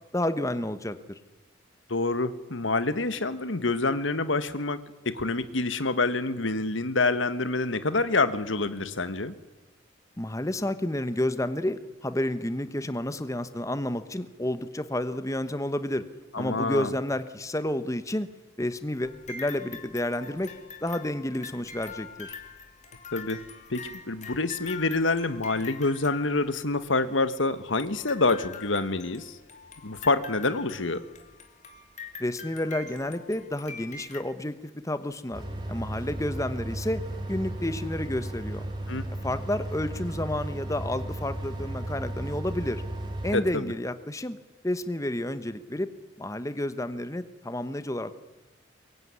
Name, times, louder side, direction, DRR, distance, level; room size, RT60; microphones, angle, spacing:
voice 1, 0.1-1.2 10.2-16.0 16.3-18.3 18.6-20.5 20.8-22.3 32.2-35.4 35.7-37.0 37.3-38.6 39.2-42.8 43.2-44.4 44.6-45.9 46.2-48.2, left 1 dB, 15° left, 12 dB, 1.1 m, -30 dB
voice 2, 1.9-4.8 5.0-9.3 16.3-16.9 23.1-23.4 23.7-29.4 29.8-31.1 38.9-39.0 43.3-43.7, left 3 dB, 85° left, 12 dB, 1.5 m, -27 dB
sound 1, 19.0-26.9 27.8-34.2, left 5 dB, 40° left, 2.8 m, -44 dB
sound 2, 35.3-43.4, right 1 dB, 25° right, 4.2 m, -35 dB
23.0 x 22.0 x 9.7 m, 1.1 s
head